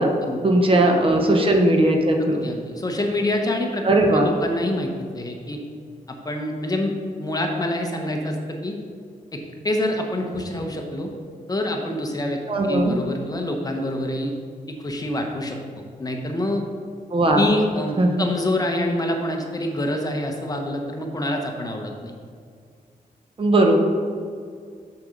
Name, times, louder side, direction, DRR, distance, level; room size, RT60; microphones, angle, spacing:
voice 1, 0.4-2.5 3.8-4.3 12.5-12.9 17.1-17.4 18.0-18.1 23.4-23.8, right 1 dB, 35° right, 3 dB, 0.9 m, -18 dB
voice 2, 2.4-3.8 4.1-5.6 6.1-6.9 7.2-8.8 9.3-11.1 11.5-14.3 14.7-15.6 16.0-16.6 17.3-22.1, left 1 dB, 25° left, 2 dB, 0.9 m, -26 dB
6.9 x 6.8 x 5.1 m, 2.2 s
wide cardioid pair, 150°, 15 cm